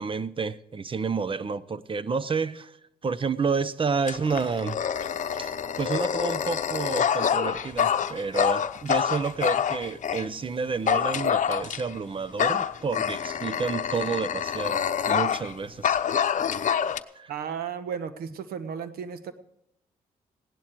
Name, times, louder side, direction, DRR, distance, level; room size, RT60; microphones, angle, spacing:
voice 1, 0.0-2.8 3.0-4.8 5.4-16.0 17.1-17.3, right 5 dB, 35° right, 0.8 m, -30 dB
Dog, 4.0-10.3 10.9-12.0 12.4-15.5 15.8-17.0, left 8 dB, 55° left, 0.8 m, -26 dB
voice 2, 17.3-19.3, right 7 dB, 80° right, 1.2 m, -34 dB
17.0 x 11.5 x 4.6 m
cardioid pair, 70°, 15 cm